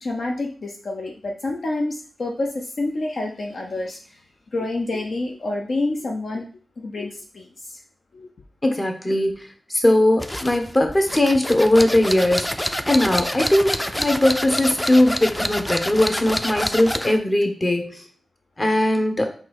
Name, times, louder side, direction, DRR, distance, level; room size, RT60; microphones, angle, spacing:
voice 1, 0.0-4.2 4.5-6.4 6.8-7.8 8.1-8.3, left 2 dB, 65° left, 1 dB, 0.6 m, -28 dB
voice 2, 8.6-9.4 9.7-12.5 12.8-18.0 18.6-19.3, left 1 dB, 35° left, 4 dB, 1.1 m, -19 dB
sound 1, 10.2-17.2, equal, 10° left, 0.4 m, -27 dB
3.8 x 2.7 x 4.6 m, 0.40 s
cardioid pair, 45°, 0 cm